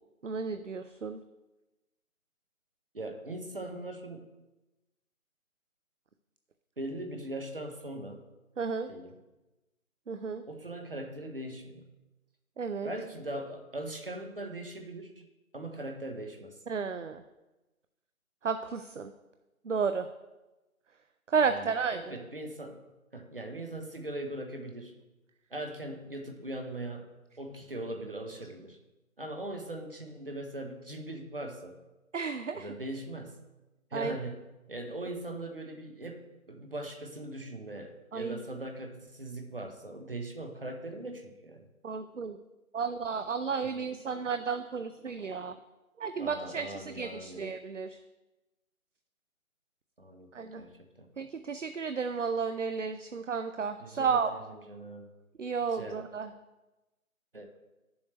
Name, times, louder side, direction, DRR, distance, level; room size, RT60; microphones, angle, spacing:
voice 1, 0.2-1.2 8.6-8.9 10.1-10.4 12.6-12.9 16.7-17.2 18.4-19.1 19.6-20.1 21.3-22.0 32.1-32.7 33.9-34.2 38.1-38.4 41.8-42.4 42.7-45.6 46.0-48.0 50.3-50.6 51.2-54.3 55.4-56.3, right 5 dB, 60° right, 9 dB, 0.5 m, -32 dB
voice 2, 2.9-4.3 6.8-8.2 8.9-9.2 10.5-11.9 12.8-15.3 15.5-16.6 21.4-22.8 23.1-25.0 25.5-28.8 29.2-31.8 32.5-33.4 33.9-41.7 43.6-43.7 46.2-47.4 50.0-50.3 50.5-51.1 53.8-55.1 55.7-56.0 57.3-57.5, right 1 dB, 40° right, 5 dB, 1.1 m, -40 dB
10.5 x 7.1 x 3.2 m, 1.1 s
figure-of-eight pair, 170°, 43 cm